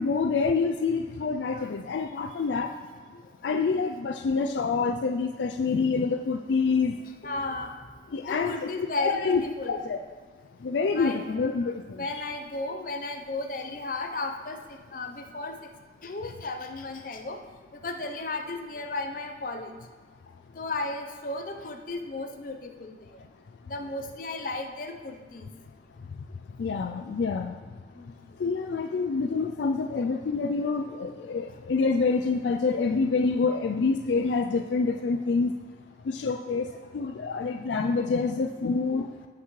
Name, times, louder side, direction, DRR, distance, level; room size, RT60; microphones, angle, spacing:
voice 1, 0.0-2.7 3.4-6.9 8.1-8.7 9.0-10.0 10.6-12.1 26.6-27.6 28.4-35.5 36.1-39.1, left 4 dB, 80° left, 5 dB, 0.4 m, -27 dB
voice 2, 7.2-7.7 8.3-9.8 10.9-11.7 12.0-15.5 16.0-17.4 17.8-19.7 20.6-23.0 23.7-25.4 27.9-28.1 38.9-39.0, left 2 dB, 50° left, 5 dB, 0.7 m, -34 dB
15.0 x 5.9 x 3.2 m, 1.4 s
head